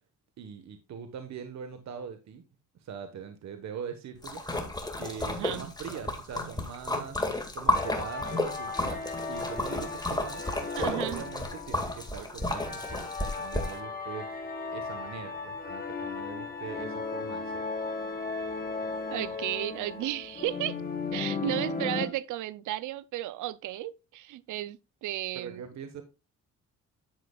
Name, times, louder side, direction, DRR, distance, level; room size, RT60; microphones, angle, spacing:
voice 1, 0.4-2.4 2.8-4.4 5.0-7.2 7.5-9.0 9.3-10.4 10.8-14.3 14.7-17.6 25.3-26.0, right 7 dB, 65° right, 1.4 m, -42 dB
Splash splatter, 4.2-13.8, left 1 dB, 15° left, 2.0 m, -32 dB
voice 2, 5.3-5.7 10.8-11.2 19.1-20.8 21.1-25.6, right 14 dB, 80° right, 0.6 m, -34 dB
sound 1, 7.7-22.1, left 4 dB, 30° left, 1.8 m, -36 dB
10.5 x 7.7 x 2.4 m
cardioid pair, 90°, 30 cm